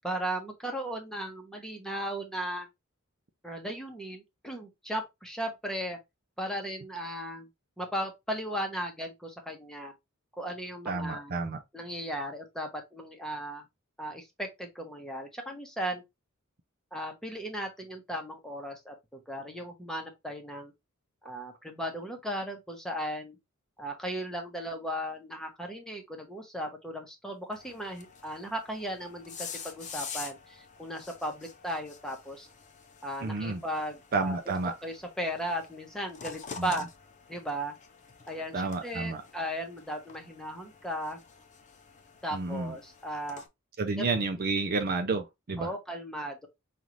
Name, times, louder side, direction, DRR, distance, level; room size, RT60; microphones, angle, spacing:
voice 1, 0.0-2.7 3.4-6.0 6.4-7.5 7.8-9.9 10.3-11.4 11.7-13.7 14.0-16.0 16.9-20.7 21.2-23.4 23.8-32.5 33.0-34.4 34.8-36.9 37.3-37.8 38.3-41.2 42.2-43.4 44.0-44.1 45.6-46.5, equal, 5° left, 1.0 m, -36 dB
voice 2, 10.9-11.6 33.2-33.6 34.1-34.7 36.6-36.7 38.5-39.2 42.3-42.7 43.8-45.7, right 3 dB, 45° right, 0.5 m, -30 dB
sound 1, 27.5-43.5, left 6 dB, 35° left, 0.7 m, -47 dB
5.5 x 2.5 x 3.1 m
head